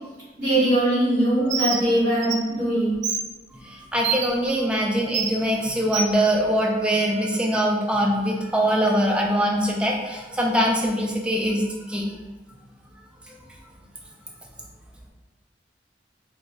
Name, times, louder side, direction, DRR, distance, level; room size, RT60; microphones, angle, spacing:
voice 1, 0.4-3.0, right 1 dB, 50° right, -11 dB, 1.5 m, -21 dB
Bird, 1.5-1.8 2.2-2.4 3.0-3.2 4.0-4.3 5.1-5.3 5.9-6.1, right 7 dB, 75° right, 0.4 m, -25 dB
voice 2, 3.7-11.6 11.9-12.0, equal, 5° right, -2 dB, 0.4 m, -23 dB
2.6 x 2.5 x 3.0 m, 1.2 s
head